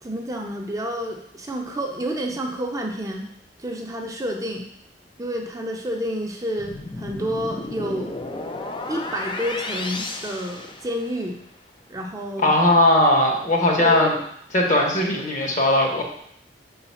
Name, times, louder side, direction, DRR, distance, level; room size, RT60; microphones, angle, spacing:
voice 1, 0.0-3.3 3.6-4.7 5.2-8.2 8.9-11.4 11.9-12.6 13.8-14.1, equal, 20° right, 1 dB, 0.6 m, -29 dB
sound 1, 6.6-11.3, left 2 dB, 30° left, 0.5 m, -33 dB
voice 2, 12.4-14.1 14.5-16.0, left 1 dB, 45° left, 1 dB, 1.3 m, -18 dB
5.1 x 4.0 x 5.6 m, 0.70 s
head